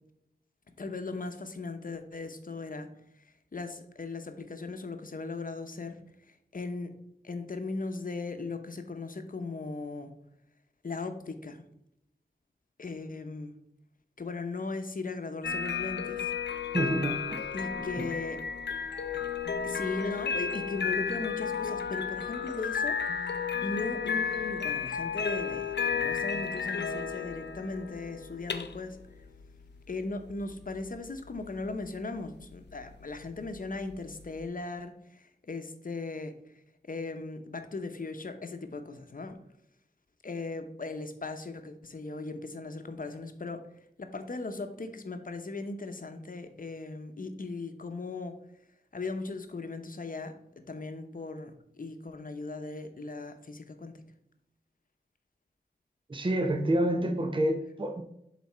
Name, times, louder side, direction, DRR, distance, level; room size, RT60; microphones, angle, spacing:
voice 1, 0.8-2.9 3.5-6.0 6.5-6.9 7.2-10.1 10.8-11.7 12.8-13.5 14.2-16.3 17.5-18.4 19.6-23.0 23.6-29.0 29.9-36.3 36.8-39.4 40.2-43.6 44.0-48.4 48.9-50.3 50.7-54.0, left 3 dB, 55° left, 0.8 m, -38 dB
sound 1, 15.4-34.4, left 6 dB, 90° left, 0.5 m, -33 dB
voice 2, 16.7-17.5 18.0-18.1 56.1-58.0, right 1 dB, 30° right, 0.6 m, -28 dB
7.2 x 4.1 x 4.3 m
wide cardioid pair, 75°, 17 cm